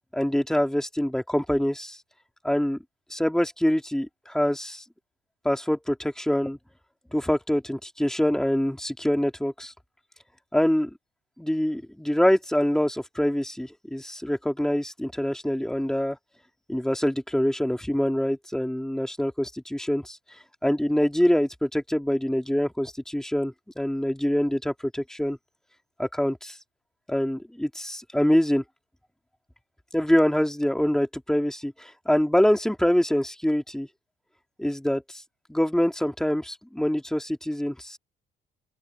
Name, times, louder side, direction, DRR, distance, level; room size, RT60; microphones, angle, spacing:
voice 1, 0.1-2.0 2.4-2.8 3.1-4.8 5.4-6.6 7.1-9.7 10.5-10.9 11.4-16.2 16.7-20.2 20.6-25.4 26.0-26.6 27.1-28.6 29.9-33.9 34.6-35.2 35.5-38.0, equal, 5° left, 2.7 m, -25 dB
open air
cardioid pair, 110°, 17 cm